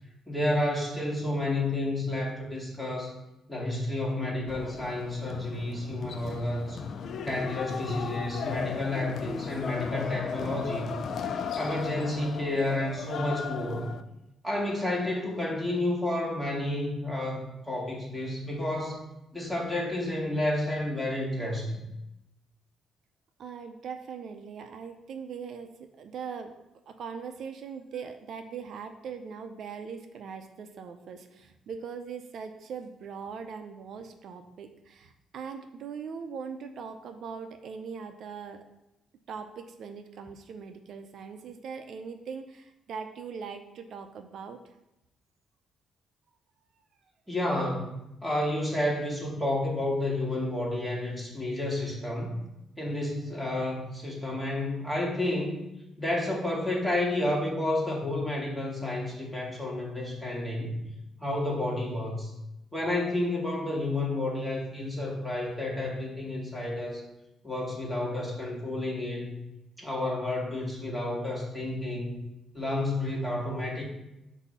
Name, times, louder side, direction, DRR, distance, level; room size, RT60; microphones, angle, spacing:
voice 1, 0.3-3.2 3.5-6.8 7.2-11.0 11.6-13.9 14.4-21.8 47.3-47.9 48.2-52.4 52.8-55.6 56.0-60.8 61.2-62.3 62.7-67.0 67.4-69.4 69.8-72.2 72.5-73.8, left 1 dB, 10° left, -3 dB, 2.0 m, -30 dB
sound 1, 4.5-14.0, left 6 dB, 60° left, 0.4 m, -36 dB
voice 2, 23.4-25.7 26.0-26.5 26.9-38.6 39.3-44.6, right 6 dB, 65° right, 7 dB, 0.5 m, -40 dB
7.9 x 2.7 x 5.5 m, 0.90 s
cardioid pair, 90°, 0 cm